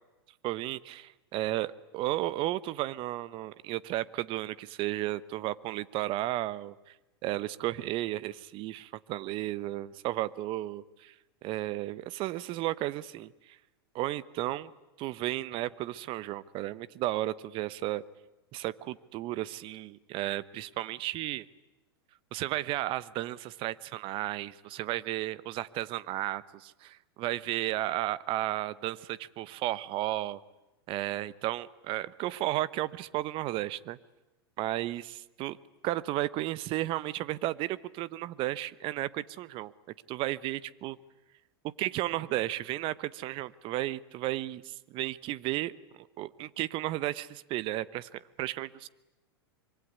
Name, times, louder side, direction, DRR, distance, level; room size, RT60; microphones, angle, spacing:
voice 1, 0.4-6.9 7.2-11.1 11.4-13.3 13.9-14.7 15.0-18.0 18.5-21.5 22.3-30.4 30.9-34.0 34.6-35.6 35.8-39.7 40.1-41.0 41.6-48.9, right 15 dB, 40° right, 19 dB, 1.0 m, -33 dB
25.0 x 23.0 x 9.7 m, 1.0 s
hypercardioid pair, 105°, 13 cm